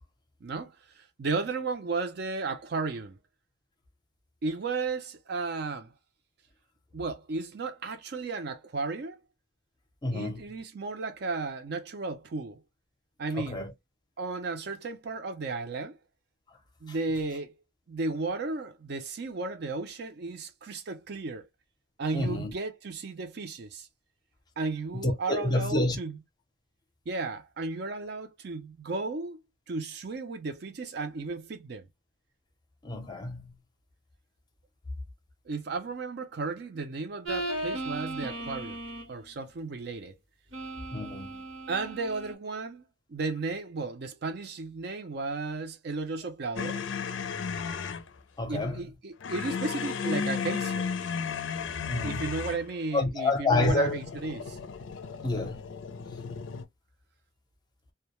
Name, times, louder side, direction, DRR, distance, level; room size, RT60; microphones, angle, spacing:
voice 1, 0.4-3.2 4.4-5.9 6.9-9.2 10.1-12.6 13.2-13.6 14.2-16.0 16.8-17.5 17.9-21.4 22.0-23.9 24.6-26.2 27.1-31.9 35.5-38.8 39.1-40.1 41.7-42.8 43.1-46.8 48.5-50.9 52.0-54.6, right 3 dB, 60° right, 0.4 m, -34 dB
voice 2, 10.0-10.5 13.4-13.7 22.1-22.5 24.9-26.0 32.8-33.5 40.9-41.3 48.4-48.8 51.9-52.2 52.9-54.0 55.2-55.6, left 2 dB, 20° left, 0.5 m, -28 dB
sound 1, 37.2-39.2 40.5-42.3, right 2 dB, 85° right, 1.0 m, -36 dB
sound 2, 46.6-48.1 49.2-52.7 53.6-56.6, left 6 dB, 80° left, 0.4 m, -34 dB
2.2 x 2.1 x 2.9 m
head